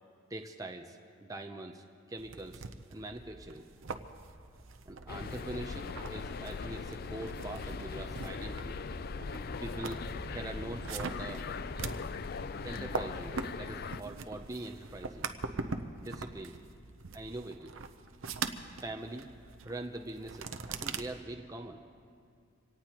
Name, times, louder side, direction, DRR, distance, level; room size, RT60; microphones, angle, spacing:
voice 1, 0.3-2.6 2.9-3.7 4.9-8.8 9.6-11.4 12.6-15.3 16.0-16.6 17.1-17.7 18.8-21.8, right 2 dB, 15° right, 4 dB, 0.6 m, -43 dB
sound 1, 2.2-21.0, right 4 dB, 75° right, 0.7 m, -43 dB
sound 2, 3.7-16.7, equal, 5° left, 2.8 m, -51 dB
sound 3, 5.1-14.0, left 5 dB, 45° left, 0.4 m, -40 dB
25.5 x 18.0 x 3.0 m, 2.4 s
head